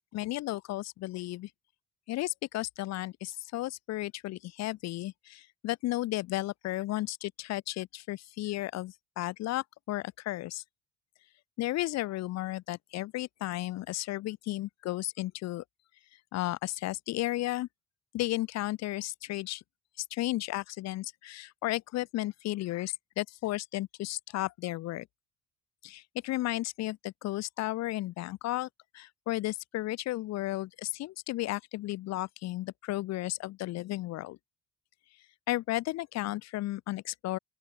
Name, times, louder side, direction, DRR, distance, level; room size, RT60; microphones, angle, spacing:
voice 1, 0.1-1.5 2.1-10.6 11.6-15.6 16.3-17.7 18.1-19.6 20.0-25.1 25.8-28.7 28.9-34.4 35.5-37.4, left 16 dB, 65° left, 1.2 m, -34 dB
open air
hypercardioid pair, 55°, 29 cm